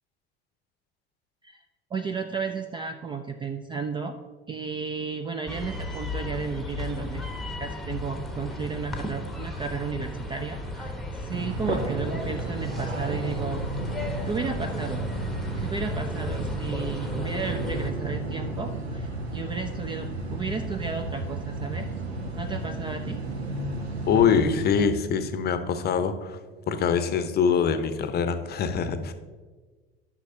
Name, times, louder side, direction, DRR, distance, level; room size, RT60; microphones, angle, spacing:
voice 1, 1.9-4.2 4.5-7.2 7.6-13.7 14.2-15.1 15.6-21.9 22.4-23.2, right 5 dB, 15° right, 7 dB, 0.3 m, -33 dB
sound 1, 5.5-17.9, left 1 dB, ahead, 1.0 m, -35 dB
sound 2, 11.3-24.9, right 2 dB, 85° right, 0.8 m, -32 dB
voice 2, 24.1-26.4 26.7-29.1, left 6 dB, 30° left, 10 dB, 0.7 m, -24 dB
11.5 x 5.9 x 2.8 m, 1.4 s
figure-of-eight pair, 70°, 31 cm